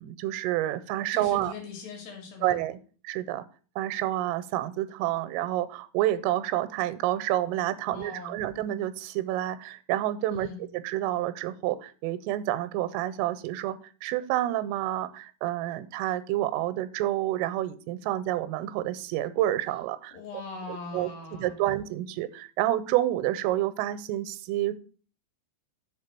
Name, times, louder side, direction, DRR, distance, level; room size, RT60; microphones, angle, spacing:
voice 1, 0.0-1.5 2.4-2.8 3.0-3.4 3.8-10.5 10.7-20.2 20.7-21.1 21.4-24.7, right 14 dB, 85° right, 14 dB, 3.1 m, -29 dB
voice 2, 1.1-2.6 7.9-8.5 10.3-10.7 20.1-21.6, left 4 dB, 65° left, 1 dB, 3.6 m, -41 dB
7.3 x 4.0 x 6.6 m, 0.40 s
omnidirectional pair, 5.7 m